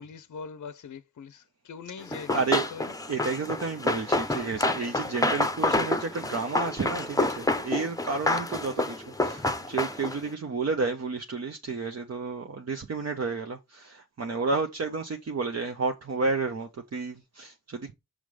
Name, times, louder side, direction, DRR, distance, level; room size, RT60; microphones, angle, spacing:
voice 1, 0.0-2.4 2.7-2.9, left 5 dB, 50° left, 0.7 m, -42 dB
Run, 2.1-10.3, left 2 dB, 10° left, 0.8 m, -28 dB
voice 2, 2.3-2.7 3.1-17.9, right 4 dB, 45° right, 0.9 m, -31 dB
6.5 x 3.7 x 4.8 m
cardioid pair, 80°, 37 cm